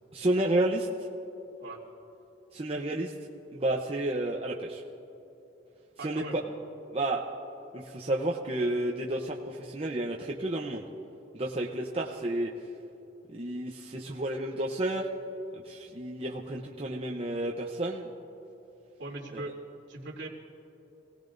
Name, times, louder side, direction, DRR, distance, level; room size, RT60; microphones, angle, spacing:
voice 1, 0.1-0.9 2.5-3.1 3.5-4.8 6.0-6.4 6.9-7.2 7.7-10.8 11.3-12.5 13.3-15.1 15.5-18.1 19.3-19.4, right 1 dB, 30° right, -1 dB, 0.8 m, -31 dB
voice 2, 6.0-6.4 19.0-19.5 19.9-20.3, right 2 dB, 65° right, -3 dB, 3.0 m, -40 dB
26.0 x 18.0 x 2.6 m, 3.0 s
head